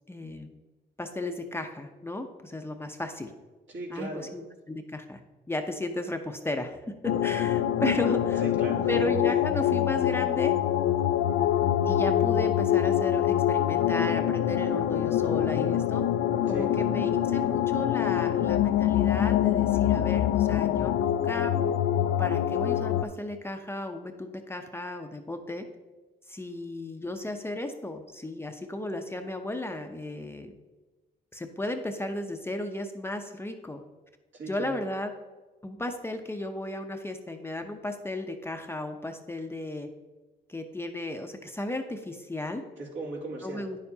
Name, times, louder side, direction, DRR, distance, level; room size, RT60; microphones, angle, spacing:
voice 1, 0.1-0.5 1.0-3.3 3.9-5.2 5.5-8.5 8.9-10.6 11.8-16.1 16.4-21.5 22.2-25.6 26.3-30.5 31.3-33.8 34.5-35.1 35.6-39.9 40.5-42.6 43.4-43.8, left 1 dB, 10° left, 5 dB, 0.6 m, -34 dB
voice 2, 3.7-4.3 8.4-9.1 16.5-16.9 34.3-34.8 42.8-43.6, right 2 dB, 70° right, -4 dB, 2.4 m, -38 dB
sound 1, 7.0-23.0, left 11 dB, 75° left, 0.4 m, -25 dB
9.7 x 6.8 x 2.8 m, 1.2 s
cardioid pair, 90°, 20 cm